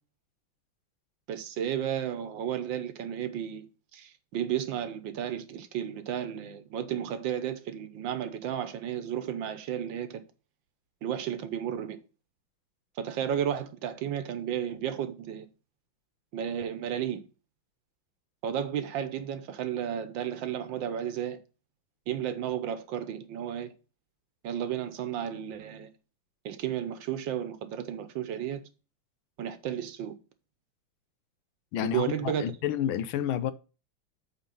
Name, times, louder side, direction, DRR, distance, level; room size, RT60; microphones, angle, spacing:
voice 1, 1.3-3.7 3.9-10.2 11.0-12.0 13.0-15.5 16.3-17.2 18.4-21.4 22.1-23.7 24.4-25.9 26.4-28.6 29.4-30.1 31.8-32.5, right 9 dB, 70° right, 1.6 m, -33 dB
voice 2, 31.7-33.5, left 10 dB, 80° left, 1.5 m, -30 dB
8.3 x 3.8 x 5.4 m
omnidirectional pair, 2.2 m